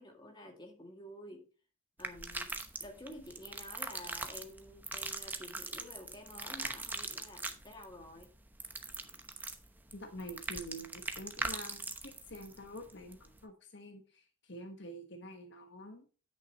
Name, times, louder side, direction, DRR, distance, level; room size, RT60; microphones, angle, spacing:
voice 1, 0.0-1.5 2.0-2.5 2.8-8.3, left 1 dB, 20° left, 2 dB, 2.2 m, -50 dB
sound 1, 2.0-13.4, right 2 dB, 10° right, 0.8 m, -42 dB
voice 2, 9.9-16.0, equal, 55° left, 5 dB, 1.4 m, -47 dB
10.0 x 8.5 x 3.0 m, 0.36 s
head